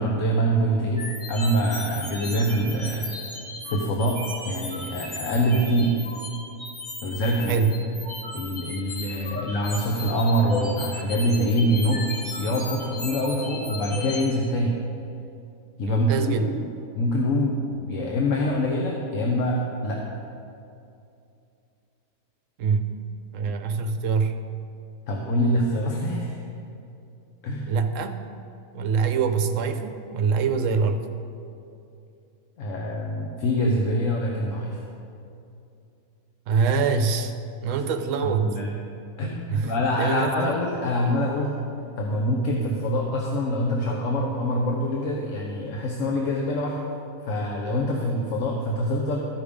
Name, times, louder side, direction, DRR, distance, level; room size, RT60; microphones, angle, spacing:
voice 1, 0.0-3.1 3.7-6.0 7.0-7.6 8.3-14.8 15.8-16.7 17.0-20.0 25.1-26.4 27.4-27.7 32.6-34.8 38.2-38.7 39.2-41.6 42.0-46.8 47.2-49.3, equal, 65° left, 0 dB, 1.1 m, -25 dB
sound 1, 1.0-14.2, left 2 dB, 85° left, 3.0 m, -35 dB
voice 2, 15.9-16.5 22.6-23.0 23.3-24.4 27.7-28.2 28.7-31.0 36.5-37.3 37.6-38.6 39.5-40.5, right 5 dB, 70° right, 7 dB, 1.0 m, -24 dB
13.5 x 5.2 x 5.0 m, 2.6 s
omnidirectional pair, 1.5 m